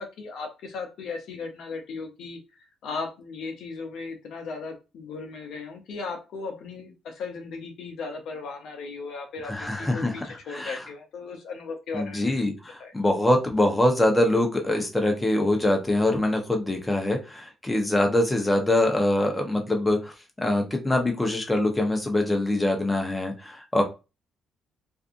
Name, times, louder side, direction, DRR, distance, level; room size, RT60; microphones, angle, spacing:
voice 1, 0.0-12.3 12.8-12.9, left 4 dB, 75° left, 4 dB, 0.6 m, -37 dB
voice 2, 9.4-10.1 10.5-10.8 11.9-23.8, left 1 dB, 15° left, 2 dB, 0.8 m, -24 dB
2.6 x 2.4 x 2.5 m, 0.28 s
cardioid pair, 90°, 0 cm